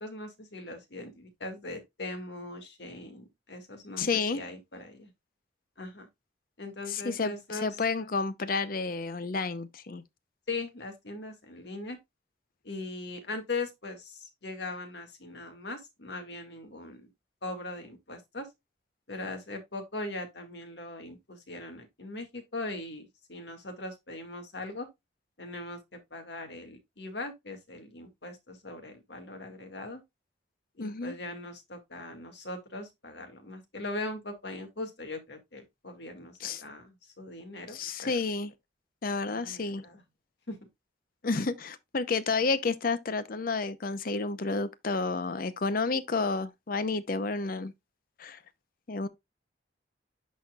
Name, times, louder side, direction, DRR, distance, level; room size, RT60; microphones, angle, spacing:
voice 1, 0.0-5.1 5.8-6.1 6.6-7.7 10.5-12.0 12.6-17.1 17.4-18.5 19.1-24.9 25.4-30.0 30.8-38.2 39.3-40.0 40.5-40.6, left 2 dB, 70° left, 1.9 m, -40 dB
voice 2, 4.0-4.4 6.9-10.0 30.8-31.1 36.4-36.6 37.7-38.5 39.0-39.8 41.2-47.7 48.2-48.4 48.9-49.1, left 4 dB, 50° left, 0.6 m, -30 dB
11.0 x 4.2 x 2.3 m
head